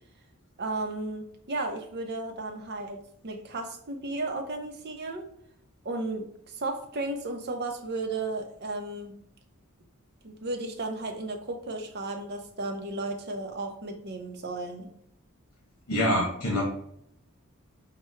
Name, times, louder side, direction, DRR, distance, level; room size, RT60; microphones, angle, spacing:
voice 1, 0.6-5.2 5.8-9.2 10.2-14.9, right 2 dB, 50° right, 4 dB, 0.7 m, -34 dB
voice 2, 15.9-16.6, left 1 dB, 75° left, -2 dB, 1.2 m, -25 dB
5.6 x 2.2 x 3.1 m, 0.71 s
head